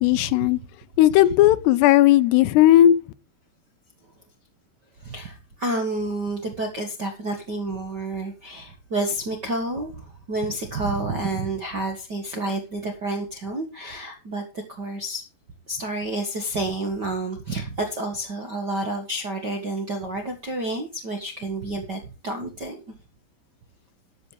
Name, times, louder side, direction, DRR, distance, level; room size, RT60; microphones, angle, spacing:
voice 1, 0.0-0.6 1.0-3.0, left 13 dB, 85° left, 2.8 m, -16 dB
voice 2, 5.0-15.2 15.7-22.8, right 2 dB, 60° right, 1.1 m, -29 dB
12.0 x 7.5 x 4.9 m
omnidirectional pair, 4.7 m